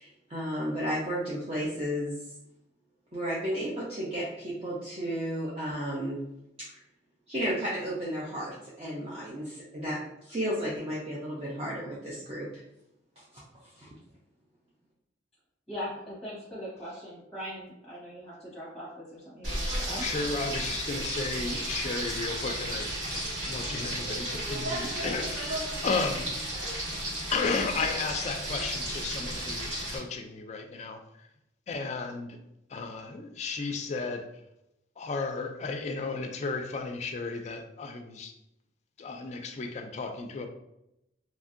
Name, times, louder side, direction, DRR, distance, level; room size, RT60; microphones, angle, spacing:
voice 1, 0.0-2.3 3.1-6.2 7.3-12.5 13.2-13.9, equal, 30° right, -7 dB, 0.5 m, -33 dB
voice 2, 15.7-20.1, equal, ahead, -8 dB, 1.0 m, -40 dB
Frying (food), 19.4-30.0, right 1 dB, 90° right, 1.5 m, -33 dB
voice 3, 20.0-25.3 25.6-26.5 27.3-31.3 31.7-32.4 32.7-34.3 35.0-38.3 39.0-40.5, left 4 dB, 35° left, 5 dB, 0.3 m, -34 dB
3.0 x 2.5 x 2.5 m, 0.86 s
head